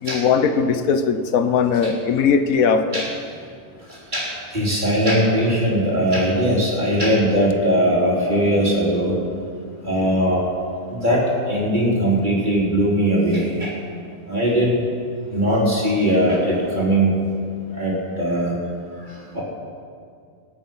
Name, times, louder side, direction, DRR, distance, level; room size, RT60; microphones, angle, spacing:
voice 1, 0.0-3.0, left 6 dB, 85° left, 9 dB, 1.3 m, -19 dB
voice 2, 4.1-9.1 9.8-10.4 10.9-13.7 14.3-14.8 15.3-17.1 17.7-18.5 19.3-19.4, equal, 35° right, -5 dB, 4.1 m, -20 dB
25.0 x 8.9 x 5.6 m, 2.3 s
omnidirectional pair, 1.4 m